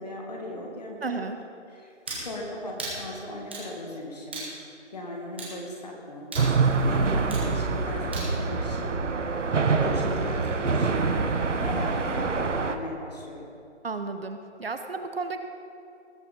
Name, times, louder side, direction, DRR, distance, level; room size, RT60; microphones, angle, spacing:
voice 1, 0.0-1.2 1.7-4.4 4.9-6.3 6.8-9.2 9.6-13.5, left 1 dB, 35° left, 0 dB, 2.0 m, -38 dB
voice 2, 1.0-1.4 13.8-15.4, right 4 dB, 55° right, 7 dB, 0.9 m, -33 dB
sound 1, 2.1-2.3 2.8-3.0 3.5-3.7 4.3-4.5 5.4-5.6 6.3-6.5 7.3-7.5 8.1-8.3, right 2 dB, 10° right, 1.0 m, -35 dB
sound 2, 6.4-12.8, right 4 dB, 80° right, 1.2 m, -25 dB
19.0 x 6.6 x 5.3 m, 2.4 s
hypercardioid pair, 175°, 36 cm